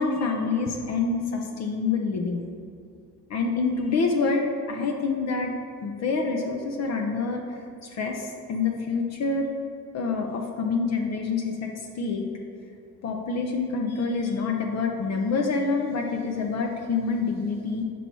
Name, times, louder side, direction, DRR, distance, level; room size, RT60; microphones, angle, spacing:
voice 1, 0.0-2.4 3.3-5.5 5.8-9.5 9.9-11.7 12.0-12.3 13.0-17.8, left 4 dB, 60° left, 2 dB, 0.6 m, -27 dB
5.7 x 3.1 x 5.3 m, 2.5 s
cardioid pair, 90°, 30 cm